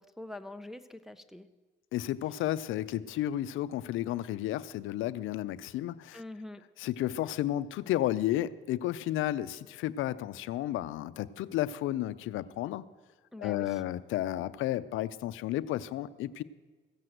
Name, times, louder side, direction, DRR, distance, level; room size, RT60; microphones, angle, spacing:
voice 1, 0.0-1.5 6.1-6.6 13.3-13.8, left 2 dB, ahead, 8 dB, 0.6 m, -44 dB
voice 2, 1.9-6.2 6.8-12.8 13.4-16.4, left 13 dB, 85° left, 16 dB, 0.5 m, -32 dB
15.5 x 7.6 x 7.8 m, 1.3 s
cardioid pair, 90°, 20 cm